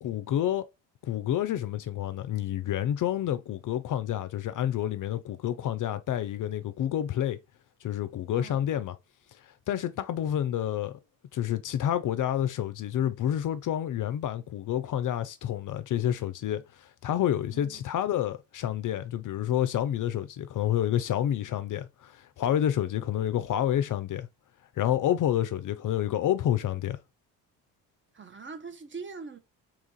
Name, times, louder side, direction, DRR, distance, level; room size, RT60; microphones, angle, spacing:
voice 1, 0.0-0.6 1.0-7.4 7.8-9.0 9.4-11.0 11.3-24.3 24.8-27.0, left 11 dB, 45° left, 0.4 m, -29 dB
voice 2, 8.3-8.7 17.5-17.8 28.1-29.4, right 5 dB, 25° right, 0.7 m, -42 dB
3.0 x 2.4 x 3.8 m
hypercardioid pair, 55°, 43 cm